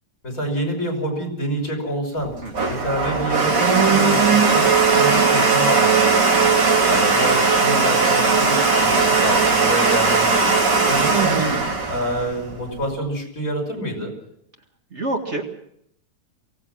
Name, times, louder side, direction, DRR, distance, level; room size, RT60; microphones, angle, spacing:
voice 1, 0.2-2.3 2.7-6.5 6.9-11.5 11.9-14.1, right 1 dB, 50° left, 2 dB, 6.3 m, -27 dB
Domestic sounds home sounds, 2.2-12.9, right 4 dB, 80° right, 3.6 m, -18 dB
voice 2, 2.4-2.7 6.8-7.0 14.9-15.5, right 2 dB, 40° right, 3 dB, 2.2 m, -28 dB
24.0 x 18.0 x 6.3 m, 0.73 s
omnidirectional pair, 1.8 m